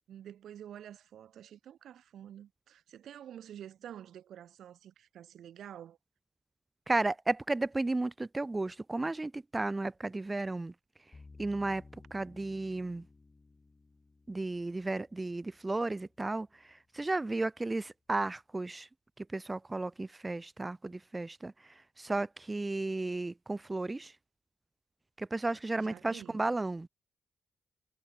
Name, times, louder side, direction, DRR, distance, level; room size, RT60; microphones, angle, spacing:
voice 1, 0.1-6.0 25.8-26.4, right 10 dB, 85° right, 1.2 m, -49 dB
voice 2, 6.9-10.7 11.4-11.8 12.1-13.0 14.3-18.9 19.3-24.1 25.2-26.9, right 2 dB, 15° right, 0.3 m, -34 dB
sound 1, 11.1-16.2, left 3 dB, 25° left, 2.5 m, -57 dB
wide cardioid pair, 150°, 0 cm